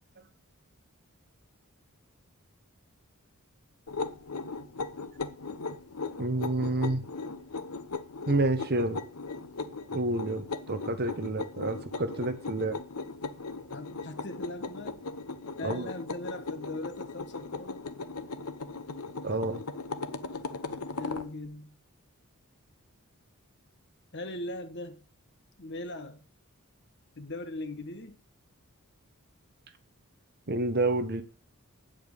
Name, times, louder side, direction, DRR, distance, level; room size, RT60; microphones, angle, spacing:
sound 1, 3.9-21.3, left 3 dB, 75° left, 1.0 m, -38 dB
voice 1, 6.2-7.0 8.3-9.0 9.9-12.8 15.6-15.9 19.2-19.6 30.5-31.2, right 2 dB, 45° right, 1.4 m, -29 dB
voice 2, 13.7-15.0 15.6-17.8 21.0-21.8 24.1-25.0 25.6-26.2 27.2-28.2, left 1 dB, 50° left, 1.5 m, -39 dB
8.9 x 7.9 x 8.3 m
head